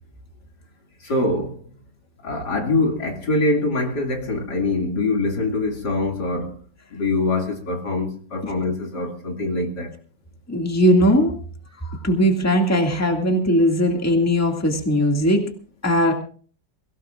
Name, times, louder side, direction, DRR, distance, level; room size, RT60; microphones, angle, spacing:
voice 1, 1.0-1.6 2.2-6.6 6.9-9.9, left 2 dB, 65° left, 3.0 m, -24 dB
voice 2, 10.5-11.3 11.8-15.4 15.8-16.1, equal, 10° left, 2.0 m, -19 dB
23.0 x 17.5 x 2.5 m
omnidirectional pair, 1.9 m